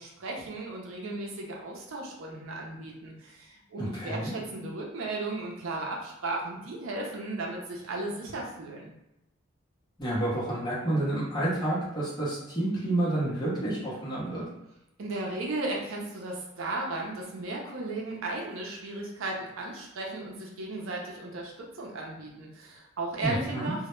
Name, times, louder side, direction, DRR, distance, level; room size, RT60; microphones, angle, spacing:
voice 1, 0.0-8.9 15.0-23.9, right 2 dB, 75° right, -1 dB, 0.5 m, -35 dB
voice 2, 3.8-4.3 10.0-14.4 23.2-23.7, right 1 dB, 20° left, -7 dB, 0.7 m, -29 dB
2.1 x 2.0 x 3.0 m, 0.85 s
head